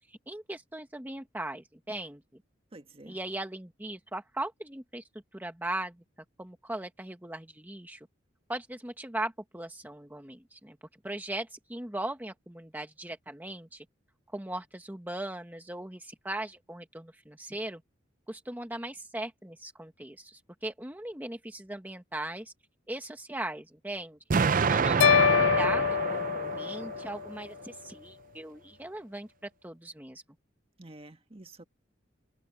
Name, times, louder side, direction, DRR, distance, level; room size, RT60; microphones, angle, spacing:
voice 1, 0.1-2.2 3.1-5.0 5.3-6.0 6.4-8.1 8.5-10.8 11.0-13.8 14.3-17.8 18.3-22.5 22.9-30.2, right 1 dB, 10° right, 1.2 m, -39 dB
voice 2, 2.7-3.2 30.8-31.7, right 2 dB, 30° right, 1.7 m, -49 dB
Explosion, 24.3-27.3, right 5 dB, 45° right, 0.5 m, -27 dB
sound 1, 25.0-27.3, left 9 dB, 75° left, 0.3 m, -25 dB
head